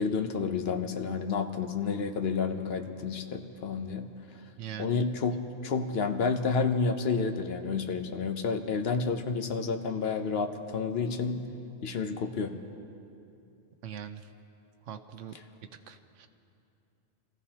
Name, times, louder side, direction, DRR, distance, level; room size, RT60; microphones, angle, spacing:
voice 1, 0.0-4.1 4.8-11.4 11.8-12.5, left 5 dB, 60° left, 7 dB, 0.9 m, -30 dB
voice 2, 4.6-5.0 13.8-14.3 14.9-15.3 15.9-16.3, right 9 dB, 80° right, 9 dB, 1.0 m, -41 dB
27.0 x 15.0 x 2.8 m, 2.7 s
omnidirectional pair, 1.2 m